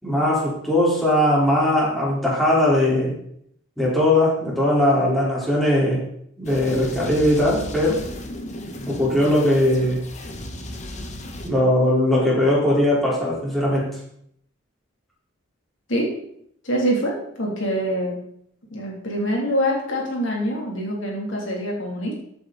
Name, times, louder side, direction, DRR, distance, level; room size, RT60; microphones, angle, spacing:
voice 1, 0.0-3.1 3.8-6.0 6.4-8.0 8.9-10.0 11.4-13.9, left 1 dB, ahead, -7 dB, 4.5 m, -19 dB
sound 1, 6.4-11.5, left 1 dB, 35° left, 1.4 m, -35 dB
voice 2, 16.6-18.2 18.7-22.1, equal, 65° left, -2 dB, 3.3 m, -25 dB
15.0 x 8.4 x 4.2 m, 0.70 s
head